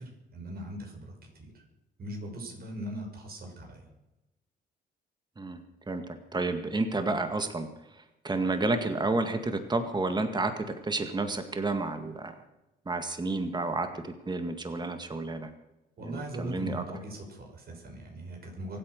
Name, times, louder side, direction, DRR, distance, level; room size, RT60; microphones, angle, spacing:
voice 1, 0.0-1.6 2.0-3.8 16.0-18.8, right 1 dB, 50° right, 1 dB, 6.0 m, -40 dB
voice 2, 6.3-7.7 8.2-12.3 12.9-15.5 16.0-16.8, right 2 dB, 20° right, 7 dB, 1.9 m, -30 dB
24.5 x 8.9 x 6.5 m, 0.97 s
cardioid pair, 90°, 20 cm